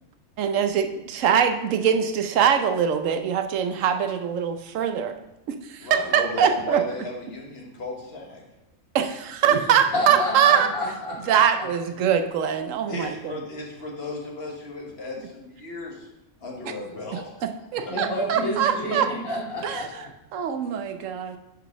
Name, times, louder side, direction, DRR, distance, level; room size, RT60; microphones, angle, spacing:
voice 1, 0.4-5.2 5.5-6.8 8.9-10.7 11.3-13.3 17.4-19.1 19.6-19.9 20.3-21.4, right 8 dB, 80° right, 7 dB, 1.0 m, -23 dB
voice 2, 5.8-8.4 12.9-16.1 16.4-17.3 17.8-18.3 18.6-18.7, left 2 dB, 55° left, -1 dB, 1.5 m, -35 dB
voice 3, 9.9-11.4 17.9-19.9, left 1 dB, 85° left, -7 dB, 2.9 m, -29 dB
10.0 x 4.0 x 3.6 m, 0.90 s
omnidirectional pair, 1.3 m